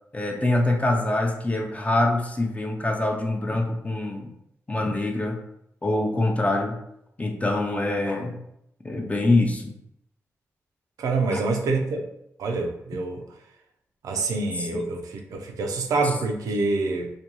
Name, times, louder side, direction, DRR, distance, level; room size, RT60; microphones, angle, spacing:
voice 1, 0.1-4.3 4.7-5.4 5.8-6.8 7.2-8.4 8.8-9.7 11.3-11.4 14.6-14.8, left 2 dB, 25° left, 2 dB, 0.5 m, -24 dB
voice 2, 11.0-12.1 12.4-13.2 14.0-17.1, right 3 dB, 85° right, 3 dB, 0.4 m, -26 dB
2.5 x 2.2 x 3.0 m, 0.78 s
cardioid pair, 65°, 6 cm